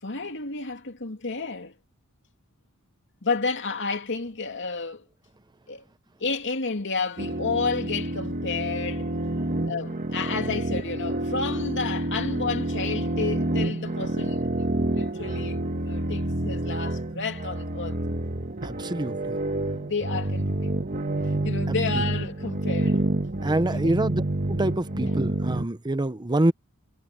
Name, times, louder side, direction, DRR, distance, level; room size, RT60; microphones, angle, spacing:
voice 1, 0.0-1.7 3.2-5.1 5.7-5.8 6.2-9.1 9.7-18.0 19.7-20.7 21.2-23.1 23.7-24.1 25.0-25.2, left 4 dB, 55° left, 2.6 m, -31 dB
sound 1, 7.2-25.7, right 1 dB, 40° right, 1.6 m, -28 dB
voice 2, 18.6-19.4 23.4-24.2 24.5-26.5, right 1 dB, 20° right, 0.8 m, -26 dB
head